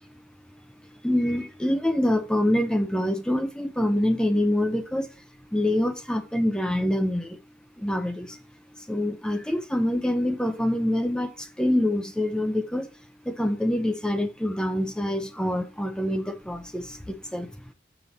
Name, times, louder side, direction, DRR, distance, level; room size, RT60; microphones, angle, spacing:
voice 1, 1.0-5.1 5.5-7.4 7.8-8.4 8.8-12.9 13.2-17.5, left 1 dB, 5° left, 0.5 m, -25 dB
6.6 x 4.9 x 4.1 m
head